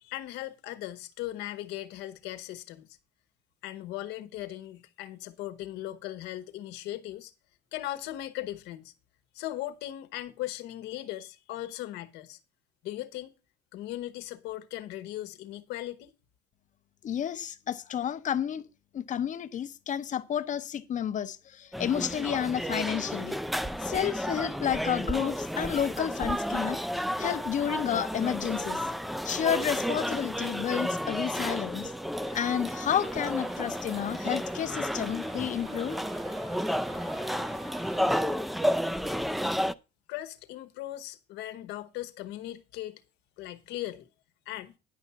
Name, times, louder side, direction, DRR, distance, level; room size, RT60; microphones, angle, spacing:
voice 1, 0.0-3.0 3.6-7.3 7.7-8.9 9.3-12.4 12.8-13.3 13.7-16.1 40.1-43.0 43.4-44.1 44.5-44.8, left 14 dB, 90° left, 1.1 m, -38 dB
voice 2, 17.0-18.6 18.9-23.4 23.8-26.8 27.2-28.8 29.2-31.9 32.3-36.0, left 9 dB, 50° left, 0.8 m, -31 dB
sound 1, 21.7-39.7, equal, ahead, 0.4 m, -32 dB
sound 2, 32.1-38.6, right 6 dB, 80° right, 2.4 m, -51 dB
10.5 x 5.6 x 5.8 m
cardioid pair, 110°, 17 cm